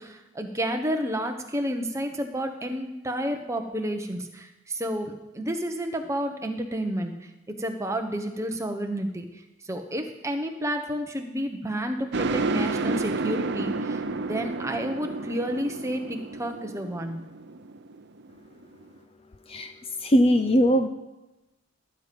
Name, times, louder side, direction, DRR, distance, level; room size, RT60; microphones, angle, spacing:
voice 1, 0.0-9.2 9.6-17.3, equal, 15° right, 4 dB, 1.0 m, -31 dB
sound 1, 12.1-18.8, right 3 dB, 50° right, 0.6 m, -30 dB
voice 2, 20.0-20.9, equal, 25° left, 8 dB, 0.5 m, -20 dB
19.5 x 9.2 x 5.2 m, 1.0 s
head